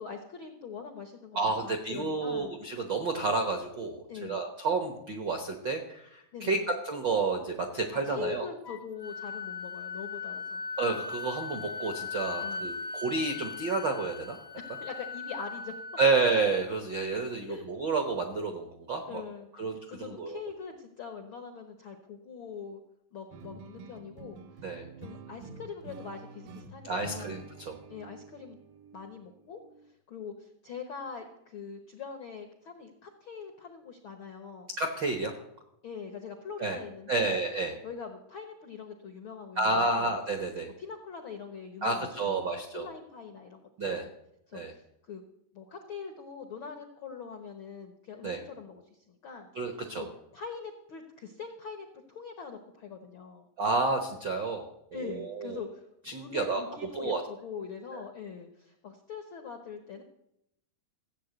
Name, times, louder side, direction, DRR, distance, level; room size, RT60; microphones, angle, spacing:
voice 1, 0.0-2.5 4.1-4.4 6.3-6.7 7.9-10.6 12.4-12.8 14.5-15.7 17.5-17.7 19.1-22.8 23.1-24.7 25.0-27.4 27.9-28.6 28.9-29.6 29.9-34.7 35.8-37.4 37.8-40.1 40.8-44.1 44.5-45.2 45.5-49.5 49.9-50.1 50.3-53.5 54.9-55.9 56.1-60.0, left 6 dB, 75° left, 5 dB, 1.1 m, -43 dB
voice 2, 1.3-8.5 10.8-14.4 16.0-19.2 19.6-20.4 24.6-24.8 26.8-27.7 34.8-35.3 36.6-36.8 37.1-37.7 39.6-40.7 41.8-42.9 43.8-44.0 44.5-44.7 48.2-48.4 49.5-50.0 53.6-54.6 54.9-55.6 56.1-56.6 56.9-57.2 57.9-58.0, right 3 dB, 70° right, 4 dB, 1.0 m, -30 dB
Wind instrument woodwind instrument, 8.6-16.4, left 5 dB, 50° left, 0.7 m, -39 dB
sound 1, 23.3-29.9, right 3 dB, 85° right, 2.8 m, -48 dB
15.0 x 8.2 x 7.9 m, 0.80 s
omnidirectional pair, 3.9 m